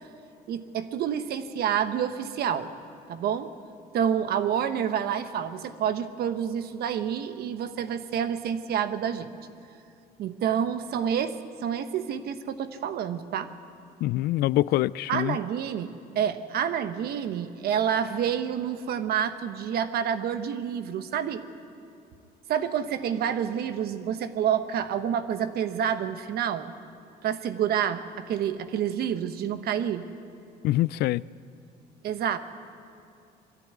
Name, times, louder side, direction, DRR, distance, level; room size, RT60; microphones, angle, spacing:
voice 1, 0.5-2.7 3.1-3.5 3.9-9.3 10.2-11.3 11.6-13.5 15.1-21.4 22.5-26.7 27.2-30.1 32.0-32.4, right 8 dB, 65° right, 1.1 m, -28 dB
voice 2, 14.0-15.4 30.6-31.2, left 16 dB, 75° left, 0.4 m, -24 dB
22.0 x 13.5 x 9.7 m
cardioid pair, 110°, 17 cm